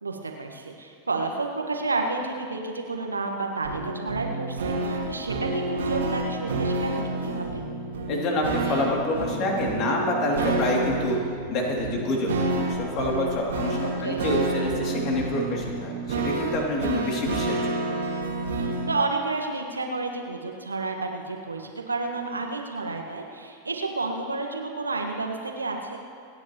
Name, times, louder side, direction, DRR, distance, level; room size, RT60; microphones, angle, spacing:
voice 1, 0.0-7.6 13.8-14.2 18.6-26.0, right 3 dB, 80° right, 3 dB, 1.5 m, -31 dB
sound 1, 3.6-18.9, right 2 dB, 65° right, 2.2 m, -29 dB
voice 2, 8.1-11.2 11.5-17.6 17.9-18.0, left 1 dB, 35° left, -1 dB, 2.8 m, -27 dB
27.5 x 9.8 x 3.1 m, 2.3 s
figure-of-eight pair, 90°, 0 cm